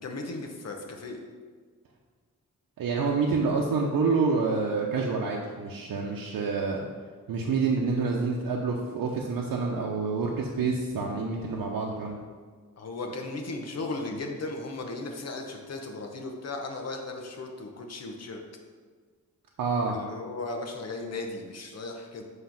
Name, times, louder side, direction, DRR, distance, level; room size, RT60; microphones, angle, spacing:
voice 1, 0.0-1.2 12.8-18.4 19.9-22.2, left 2 dB, 50° left, 3 dB, 0.9 m, -36 dB
voice 2, 2.8-6.9 7.3-12.2 19.6-20.0, right 4 dB, 85° right, -1 dB, 0.8 m, -27 dB
7.4 x 3.2 x 5.8 m, 1.5 s
wide cardioid pair, 145°, 33 cm